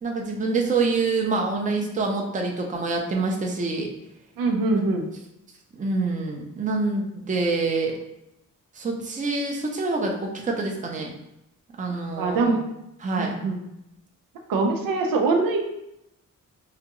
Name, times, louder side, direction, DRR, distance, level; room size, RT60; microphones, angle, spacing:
voice 1, 0.0-3.9 4.7-4.9 5.7-8.0 8.7-11.1 11.8-12.6 13.0-13.3, right 3 dB, 25° right, 0 dB, 0.5 m, -26 dB
voice 2, 4.4-5.1 12.2-12.6 13.2-13.6 14.5-15.6, right 3 dB, 90° right, 2 dB, 0.7 m, -23 dB
4.8 x 2.3 x 2.9 m, 0.84 s
wide cardioid pair, 135°, 33 cm